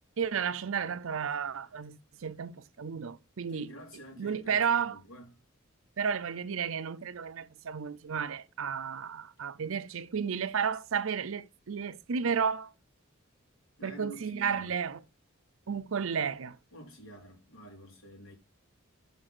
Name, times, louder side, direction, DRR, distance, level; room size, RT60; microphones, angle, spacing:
voice 1, 0.2-3.7 4.2-5.0 6.0-12.7 13.8-15.0 15.7-16.6, right 6 dB, 65° right, 0.5 m, -32 dB
voice 2, 3.5-5.4 13.8-14.8 16.7-18.3, right 1 dB, 70° left, 3.5 m, -48 dB
6.3 x 5.5 x 6.0 m
head